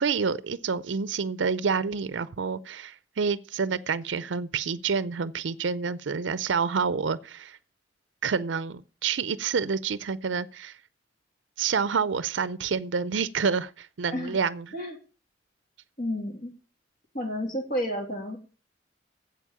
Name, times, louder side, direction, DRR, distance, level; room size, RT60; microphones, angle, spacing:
voice 1, 0.0-7.6 8.2-10.8 11.6-14.7, right 5 dB, 75° right, 0.5 m, -28 dB
voice 2, 16.0-16.5 17.1-18.4, equal, 50° left, 2.8 m, -31 dB
8.2 x 7.9 x 8.6 m
head